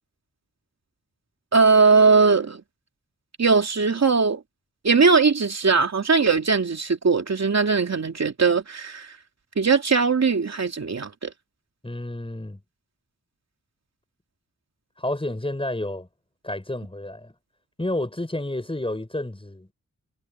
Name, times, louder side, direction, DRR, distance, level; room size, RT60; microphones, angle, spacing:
voice 1, 1.5-2.6 3.4-4.4 4.8-9.2 9.6-11.3, right 4 dB, 55° right, 2.8 m, -20 dB
voice 2, 11.8-12.6 15.0-16.1 16.4-17.3 17.8-19.7, left 1 dB, 15° left, 7.0 m, -30 dB
cardioid pair, 65°, 31 cm